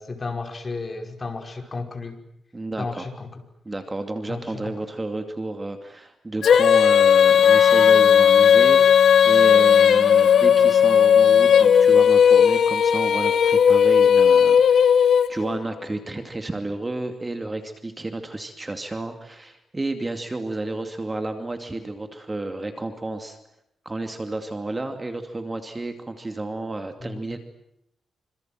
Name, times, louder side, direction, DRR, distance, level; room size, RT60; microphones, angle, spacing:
voice 1, 0.0-2.1 2.8-3.4 4.3-4.7 27.0-27.2, left 3 dB, 30° left, 5 dB, 5.4 m, -33 dB
voice 2, 2.5-3.0 3.7-23.4 23.8-27.4, right 2 dB, 20° right, 7 dB, 2.6 m, -31 dB
Female singing, 6.4-15.6, left 8 dB, 70° left, 1.2 m, -15 dB
Wind instrument woodwind instrument, 7.2-12.0, right 1 dB, ahead, 2.3 m, -37 dB
27.5 x 26.5 x 7.8 m, 0.77 s
wide cardioid pair, 130°, 0 cm